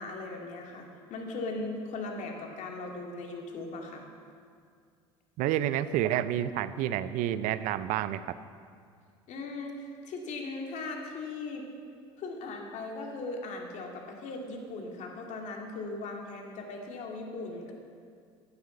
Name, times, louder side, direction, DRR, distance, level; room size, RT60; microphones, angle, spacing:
voice 1, 0.0-4.0 9.3-11.7 12.2-17.7, left 3 dB, 50° left, 1 dB, 2.2 m, -38 dB
voice 2, 5.4-8.2, right 12 dB, 60° right, 14 dB, 0.5 m, -29 dB
9.3 x 9.3 x 7.1 m, 2.2 s
hypercardioid pair, 70°, 15 cm